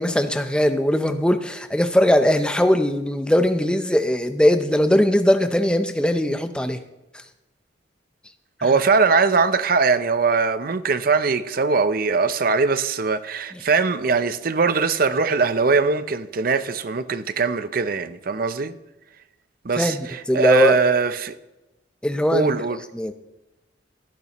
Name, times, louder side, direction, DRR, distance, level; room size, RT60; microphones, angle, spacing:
voice 1, 0.0-6.8 8.6-8.7 19.8-20.8 22.0-22.5 22.9-23.1, left 1 dB, 5° left, 0.7 m, -20 dB
voice 2, 8.6-18.7 19.6-21.4 22.3-22.8, right 4 dB, 50° right, 0.6 m, -21 dB
16.5 x 11.0 x 3.1 m
head